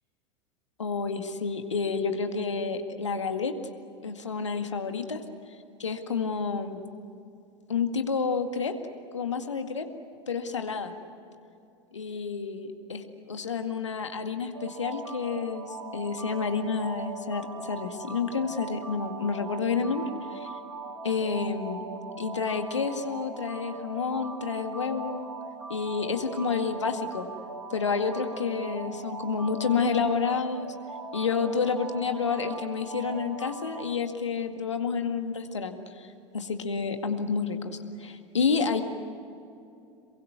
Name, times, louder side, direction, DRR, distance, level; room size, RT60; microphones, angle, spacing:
voice 1, 0.8-3.5 4.0-5.2 5.8-6.8 7.7-8.7 9.1-9.9 10.3-10.9 11.9-20.0 20.3-20.5 21.0-21.8 22.2-25.3 25.7-27.3 27.7-30.7 31.1-38.8, left 5 dB, 75° left, 6 dB, 2.0 m, -29 dB
sound 1, 14.5-33.8, right 3 dB, 85° right, 2.5 m, -40 dB
27.5 x 23.0 x 8.2 m, 2.6 s
figure-of-eight pair, 85°, 15 cm